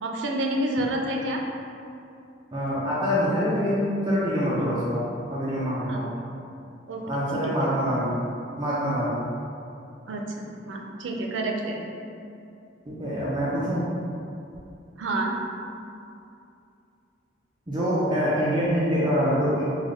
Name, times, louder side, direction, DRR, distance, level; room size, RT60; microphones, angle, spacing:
voice 1, 0.0-1.4 5.9-6.0 6.9-7.5 10.1-11.8 15.0-15.4, right 1 dB, 90° right, 1 dB, 0.4 m, -29 dB
voice 2, 2.5-6.0 7.0-8.1 8.6-9.2 12.9-13.9 17.7-19.7, equal, 25° right, -9 dB, 0.5 m, -25 dB
3.3 x 2.2 x 3.6 m, 2.6 s
head